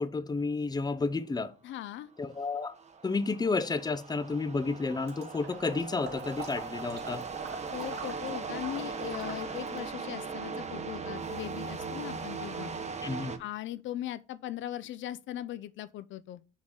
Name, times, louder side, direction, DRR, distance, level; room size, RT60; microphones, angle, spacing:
voice 1, 0.0-1.5 2.2-2.7 3.0-7.3 13.0-13.3, left 4 dB, 20° left, 0.7 m, -31 dB
voice 2, 1.6-2.1 7.7-12.7 13.4-16.4, left 12 dB, 75° left, 0.5 m, -39 dB
sound 1, 2.2-13.4, right 4 dB, 35° right, 1.0 m, -39 dB
Water / Liquid, 5.1-9.9, right 4 dB, 55° right, 3.0 m, -44 dB
6.2 x 3.9 x 6.0 m
cardioid pair, 90°, 20 cm